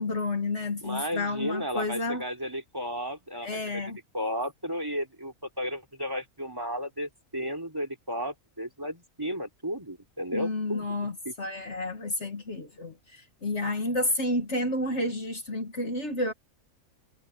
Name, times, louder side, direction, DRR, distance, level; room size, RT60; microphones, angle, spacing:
voice 1, 0.0-2.2 3.4-4.0 10.3-16.3, left 2 dB, 55° left, 2.0 m, -30 dB
voice 2, 0.8-3.8 4.1-10.9 11.3-11.4, equal, 15° right, 3.7 m, -34 dB
omnidirectional pair, 1.4 m